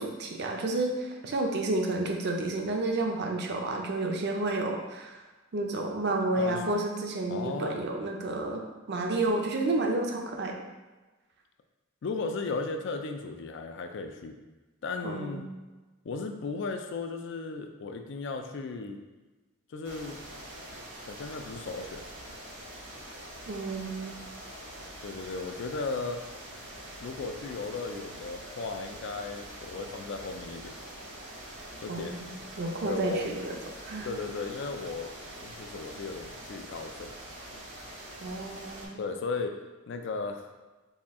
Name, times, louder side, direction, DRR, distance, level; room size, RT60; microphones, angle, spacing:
voice 1, 0.0-5.2 5.5-10.5 15.0-15.5 23.5-24.2 31.9-32.3 32.6-33.6 33.8-34.1 38.2-39.0, right 2 dB, 50° right, 2 dB, 0.5 m, -31 dB
voice 2, 7.3-7.9 12.0-14.4 14.8-15.5 16.0-19.0 19.7-20.2 21.1-22.0 25.0-26.2 27.0-30.8 31.8-32.2 32.8-33.4 34.0-35.1 35.4-37.1 39.0-39.6 39.9-40.5, left 3 dB, 60° left, 5 dB, 0.4 m, -35 dB
sound 1, 19.8-38.9, right 1 dB, 80° right, 1.1 m, -44 dB
4.2 x 2.3 x 3.5 m, 1.2 s
head